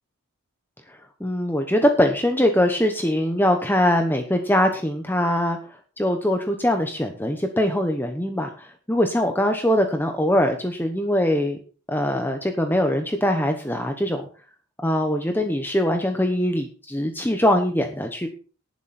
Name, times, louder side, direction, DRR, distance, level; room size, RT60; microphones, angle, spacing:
voice 1, 1.2-5.6 6.0-11.6 11.9-14.2 14.8-18.3, left 1 dB, 10° left, 5 dB, 1.1 m, -22 dB
18.5 x 7.6 x 4.3 m, 0.37 s
head